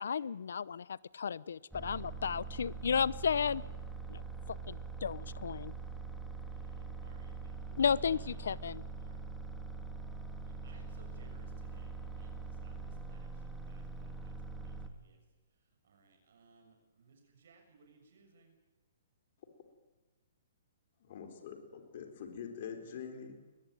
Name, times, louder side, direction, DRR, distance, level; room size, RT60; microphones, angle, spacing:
voice 1, 0.0-3.6 4.1-4.2 4.5-5.7 7.8-8.8, left 6 dB, 75° left, 21 dB, 0.8 m, -33 dB
sound 1, 1.7-14.9, right 4 dB, ahead, 2.0 m, -43 dB
voice 2, 4.4-5.4 6.5-8.5 9.0-9.2 10.2-15.2 15.5-18.6, right 4 dB, 70° right, 3 dB, 6.6 m, -64 dB
voice 3, 21.0-23.4, left 7 dB, 50° left, 5 dB, 4.3 m, -45 dB
21.5 x 20.5 x 9.4 m, 1.2 s
hypercardioid pair, 150°, 0 cm